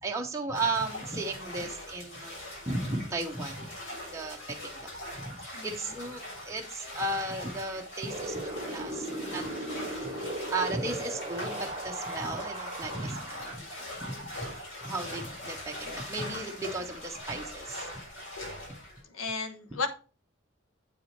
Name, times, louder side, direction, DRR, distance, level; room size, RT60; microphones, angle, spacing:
voice 1, 0.0-3.7 4.1-8.4 8.7-9.5 10.5-13.6 14.0-14.5 14.8-17.9 18.7-18.8, right 2 dB, 15° right, 0 dB, 0.9 m, -35 dB
sound 1, 0.5-19.0, left 1 dB, 65° left, 4.5 m, -42 dB
Wind, 8.1-13.5, right 1 dB, 30° right, 1.2 m, -37 dB
voice 2, 19.0-19.9, left 4 dB, 80° left, 8 dB, 1.1 m, -34 dB
8.0 x 4.8 x 4.3 m, 0.35 s
head